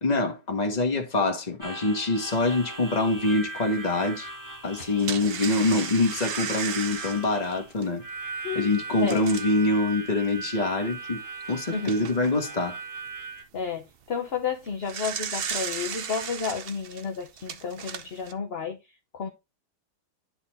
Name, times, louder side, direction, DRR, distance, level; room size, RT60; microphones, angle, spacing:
voice 1, 0.0-4.3 4.6-8.0 8.5-11.2 11.5-12.8, left 2 dB, 25° left, 1.4 m, -25 dB
Harmonica, 1.6-13.4, right 3 dB, 10° right, 1.3 m, -39 dB
sound 1, 2.4-2.5 3.1-3.2 4.6-9.6 10.3-10.4 10.7-10.8 11.5-12.3 14.5-18.3, right 7 dB, 75° right, 0.5 m, -35 dB
voice 2, 4.8-5.3 8.4-8.7 9.0-9.2 11.7-11.9 13.5-18.8 19.1-19.3, left 6 dB, 45° left, 1.0 m, -32 dB
10.5 x 4.2 x 4.1 m
omnidirectional pair, 2.0 m